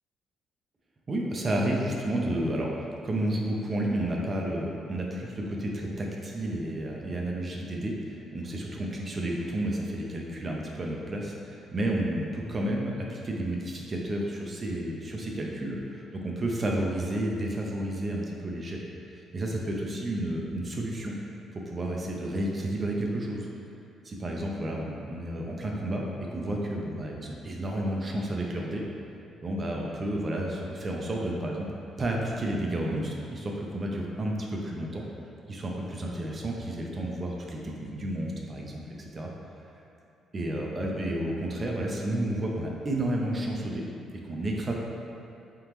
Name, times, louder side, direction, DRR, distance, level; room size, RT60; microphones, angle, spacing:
voice 1, 1.1-2.7 3.0-18.8 19.1-21.1 21.7-23.5 24.0-26.0 26.3-28.8 29.4-31.7 32.0-35.0 35.5-39.3 40.3-43.9 44.1-44.7, right 1 dB, 25° right, -1 dB, 0.4 m, -31 dB
3.7 x 3.5 x 3.0 m, 2.7 s
cardioid pair, 170°, 0 cm